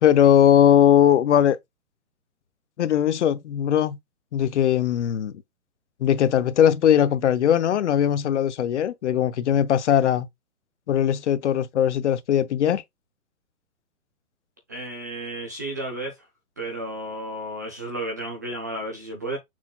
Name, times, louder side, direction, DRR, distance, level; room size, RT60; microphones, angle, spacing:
voice 1, 0.0-1.6 2.8-4.0 4.3-5.3 6.0-10.3 10.9-12.8, left 10 dB, 50° left, 0.7 m, -19 dB
voice 2, 14.7-16.2 16.6-19.4, right 1 dB, 15° right, 0.4 m, -32 dB
6.1 x 4.0 x 2.2 m
hypercardioid pair, 140°, 44 cm